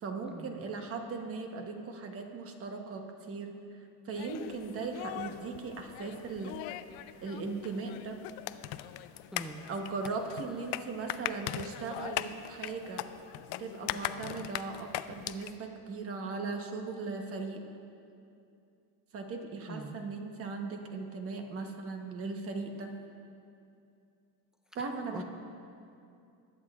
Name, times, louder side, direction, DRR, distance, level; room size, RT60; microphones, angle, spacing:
voice 1, 0.0-3.5 4.0-6.5 7.2-8.2 9.7-13.1 13.6-17.6 19.1-22.9 24.7-25.2, right 4 dB, 35° right, 4 dB, 1.1 m, -38 dB
sound 1, 4.2-15.6, left 14 dB, 65° left, 0.5 m, -40 dB
voice 2, 9.3-9.7 19.7-20.0 25.1-25.2, equal, ahead, 3 dB, 0.4 m, -43 dB
20.5 x 8.9 x 2.4 m, 2.6 s
cardioid pair, 140°, 39 cm